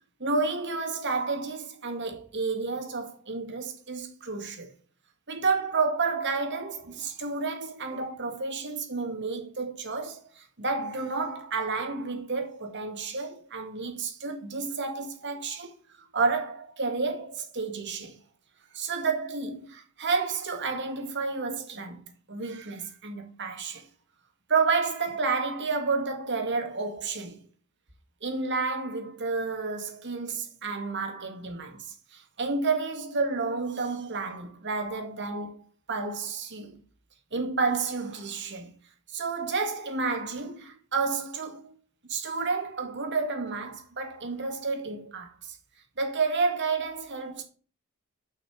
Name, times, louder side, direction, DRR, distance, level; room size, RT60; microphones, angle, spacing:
voice 1, 0.2-4.7 5.3-15.7 16.1-18.2 18.7-22.0 22.3-23.8 24.5-27.4 28.2-31.8 32.1-36.8 37.3-38.7 39.1-41.7 42.1-45.6 46.0-47.4, right 4 dB, 55° right, 2.1 m, -30 dB
6.6 x 5.9 x 7.2 m
head